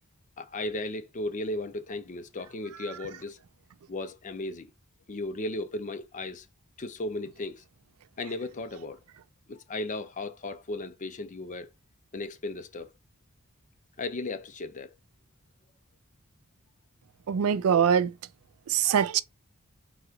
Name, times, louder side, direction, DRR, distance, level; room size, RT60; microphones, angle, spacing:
voice 1, 0.4-3.4 3.9-4.7 5.1-6.5 6.8-7.6 8.2-9.0 9.5-11.7 12.1-12.9 14.0-14.9, left 2 dB, 35° left, 0.5 m, -35 dB
voice 2, 17.3-18.1 18.7-19.2, right 8 dB, 75° right, 0.4 m, -23 dB
3.9 x 2.4 x 4.3 m
head